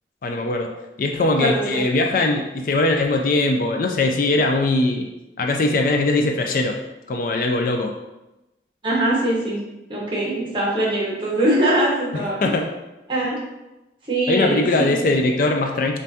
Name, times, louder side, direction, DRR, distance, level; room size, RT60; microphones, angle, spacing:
voice 1, 0.2-0.7 1.0-5.1 5.4-6.8 7.1-7.9 12.4-12.7 14.3-16.0, left 2 dB, 50° left, 3 dB, 0.3 m, -20 dB
voice 2, 1.4-1.8 8.8-9.6 9.9-12.5 13.1-13.4 14.1-15.0, right 1 dB, 25° right, -5 dB, 1.1 m, -22 dB
5.4 x 2.5 x 2.7 m, 0.99 s
head